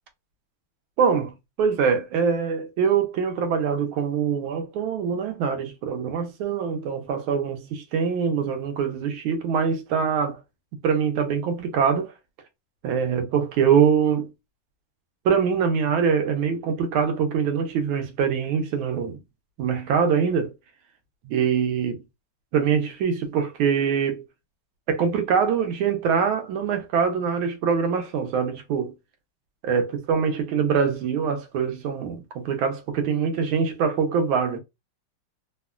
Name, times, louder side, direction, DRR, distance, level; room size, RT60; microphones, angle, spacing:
voice 1, 1.0-10.4 10.8-12.1 12.8-14.3 15.2-19.2 19.6-20.5 21.2-22.0 22.5-24.2 24.9-28.9 29.6-34.6, right 6 dB, 80° right, 1.4 m, -24 dB
3.5 x 2.1 x 2.3 m
omnidirectional pair, 2.3 m